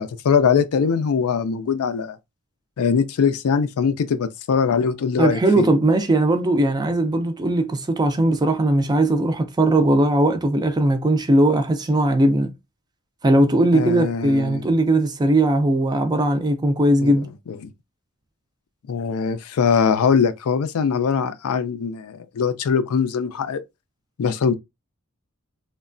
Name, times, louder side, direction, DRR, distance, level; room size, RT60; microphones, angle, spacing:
voice 1, 0.0-2.2 2.8-5.7 13.7-14.6 17.0-17.1 17.5-17.7 18.9-23.6 24.2-24.5, left 6 dB, 75° left, 0.4 m, -21 dB
voice 2, 5.2-12.5 13.2-17.3, right 1 dB, 20° right, 0.4 m, -19 dB
3.1 x 2.2 x 2.5 m
head